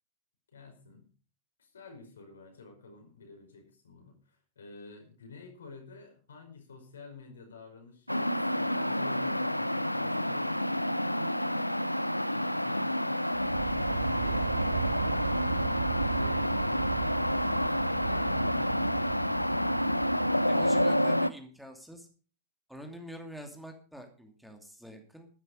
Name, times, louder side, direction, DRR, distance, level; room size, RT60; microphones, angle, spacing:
voice 1, 0.5-1.1 1.6-11.5 12.3-13.6 14.0-15.7 16.0-19.5, left 4 dB, 70° left, 4 dB, 5.1 m, -50 dB
sound 1, 8.1-21.3, equal, 90° left, 0.6 m, -29 dB
sound 2, 13.3-21.0, right 7 dB, 70° right, 2.3 m, -36 dB
voice 2, 20.5-22.1 22.7-25.3, equal, ahead, 4 dB, 2.7 m, -45 dB
13.5 x 11.0 x 5.2 m, 0.38 s
figure-of-eight pair, 90°, 0 cm